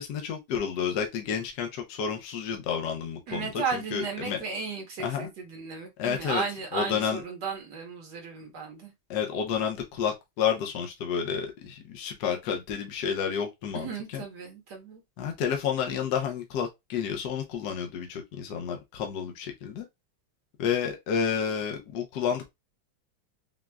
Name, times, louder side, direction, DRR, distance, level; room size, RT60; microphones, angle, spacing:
voice 1, 0.0-4.4 5.0-5.3 6.0-6.4 6.7-7.2 9.1-14.2 15.2-19.9 20.6-22.5, left 7 dB, 65° left, 1.2 m, -30 dB
voice 2, 3.3-8.9 13.7-15.0, right 5 dB, 60° right, 1.6 m, -35 dB
6.0 x 2.4 x 2.2 m
omnidirectional pair, 2.2 m